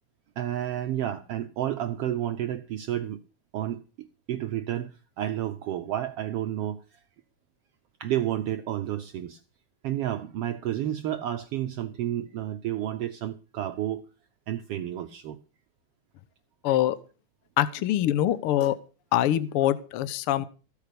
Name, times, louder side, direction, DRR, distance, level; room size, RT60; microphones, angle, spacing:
voice 1, 0.4-3.2 3.5-6.8 8.0-9.4 9.8-14.0 14.5-15.4, right 12 dB, 75° right, 1.4 m, -31 dB
voice 2, 16.6-17.0 17.6-18.8 19.1-20.4, left 12 dB, 75° left, 1.3 m, -24 dB
15.0 x 8.4 x 6.8 m
omnidirectional pair, 3.6 m